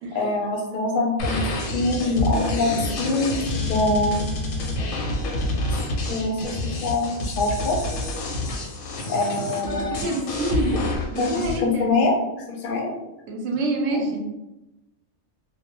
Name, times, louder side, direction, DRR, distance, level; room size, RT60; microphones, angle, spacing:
voice 1, 0.1-1.5 1.7-3.4 3.7-4.2 5.7-5.8 6.1-7.8 9.1-10.1 11.2-12.1 12.5-12.9 13.9-14.0, left 2 dB, 55° left, 0 dB, 0.6 m, -24 dB
sound 1, 1.2-11.6, left 2 dB, 85° left, 0.9 m, -28 dB
voice 2, 9.9-10.8 11.1-12.0 13.3-14.2, right 1 dB, 70° right, 1 dB, 0.8 m, -26 dB
2.2 x 2.1 x 2.9 m, 0.97 s
omnidirectional pair, 1.2 m